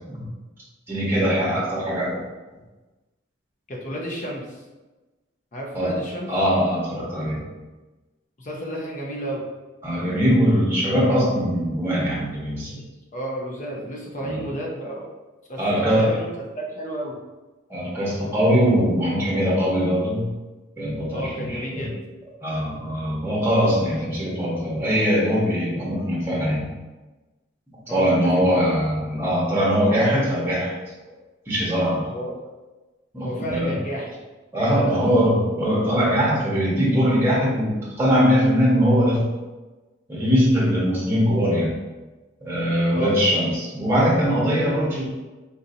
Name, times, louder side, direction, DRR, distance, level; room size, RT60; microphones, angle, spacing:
voice 1, 0.9-2.2 5.7-6.0 6.3-7.4 9.8-12.8 14.2-14.4 15.6-16.1 17.7-20.3 20.8-21.9 22.4-26.7 27.9-30.7 31.5-32.0 33.1-33.7 34.5-39.2 40.1-41.7 42.4-45.0, equal, 10° right, -6 dB, 0.9 m, -21 dB
voice 2, 3.7-4.6 5.5-6.3 8.4-9.4 13.1-15.1 15.5-16.3 16.6-17.2 21.1-21.9 27.9-28.9 32.1-32.3 33.2-34.2 34.7-35.0 42.9-43.1, equal, 40° left, -2 dB, 0.6 m, -32 dB
3.9 x 2.7 x 2.6 m, 1.2 s
head